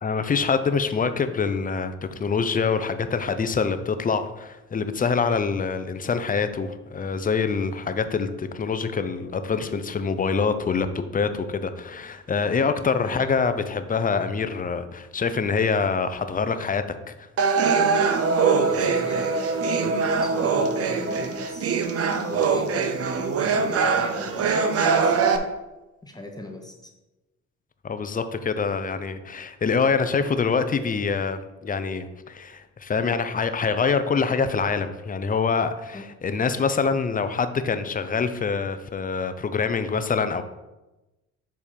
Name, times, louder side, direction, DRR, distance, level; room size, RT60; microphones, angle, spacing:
voice 1, 0.0-10.9 11.1-16.8 27.8-40.4, left 5 dB, 30° left, 10 dB, 0.5 m, -25 dB
sound 1, 17.4-25.4, right 5 dB, 50° right, 0.7 m, -22 dB
voice 2, 18.7-21.7 22.3-22.9 23.1-25.2 26.0-26.9 35.9-36.0, left 1 dB, 15° left, 2 dB, 0.9 m, -38 dB
7.1 x 3.5 x 4.4 m, 1.0 s
cardioid pair, 90°, 30 cm